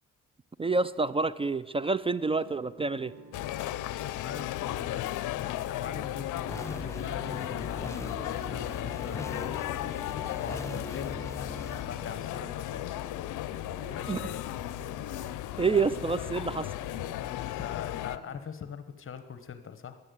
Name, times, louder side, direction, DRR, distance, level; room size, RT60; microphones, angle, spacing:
voice 1, 0.6-3.1 14.1-14.2 15.6-16.7, right 4 dB, 20° right, 17 dB, 0.4 m, -28 dB
sound 1, 1.9-18.4, right 6 dB, 90° right, 1.8 m, -51 dB
sound 2, 3.3-18.2, left 15 dB, 80° left, 0.6 m, -35 dB
voice 2, 4.2-9.6 10.4-11.3 11.6-12.8 13.9-14.4 17.1-20.0, left 7 dB, 45° left, 10 dB, 1.1 m, -42 dB
sound 3, 6.5-11.8, left 2 dB, 10° left, 1.1 m, -40 dB
12.0 x 11.0 x 8.1 m, 1.3 s
cardioid pair, 90°, 30 cm